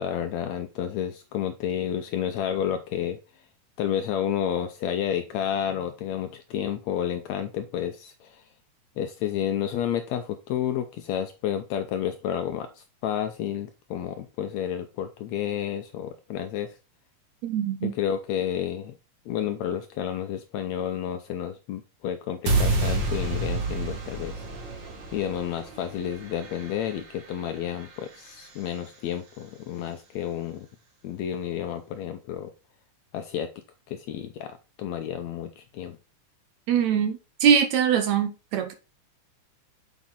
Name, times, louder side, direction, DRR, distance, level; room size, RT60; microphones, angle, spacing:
voice 1, 0.0-3.2 3.8-8.5 9.0-16.8 17.8-19.0 19.3-24.4 25.1-30.7 31.0-32.5 33.1-33.5 33.9-36.0, left 9 dB, 75° left, 1.7 m, -30 dB
voice 2, 17.4-17.9 36.7-38.7, right 8 dB, 70° right, 1.9 m, -23 dB
sound 1, 22.5-28.6, right 2 dB, 45° right, 1.7 m, -30 dB
7.1 x 5.2 x 3.8 m
omnidirectional pair, 3.7 m